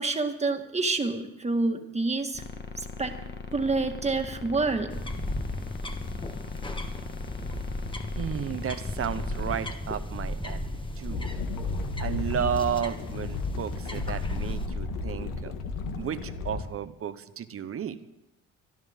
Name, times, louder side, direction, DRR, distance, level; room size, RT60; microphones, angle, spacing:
voice 1, 0.0-2.4 2.8-3.1 3.5-4.9, right 3 dB, 20° right, 5 dB, 1.8 m, -28 dB
sound 1, 2.3-9.8, left 4 dB, 30° left, 1.5 m, -40 dB
sound 2, 4.9-14.7, left 1 dB, 15° left, 1.5 m, -35 dB
voice 2, 8.2-11.2 12.0-15.5 16.0-18.0, right 8 dB, 40° right, 13 dB, 1.0 m, -33 dB
sound 3, 11.1-16.6, left 3 dB, 70° left, 1.9 m, -33 dB
23.5 x 12.0 x 3.7 m, 0.95 s
cardioid pair, 90°, 34 cm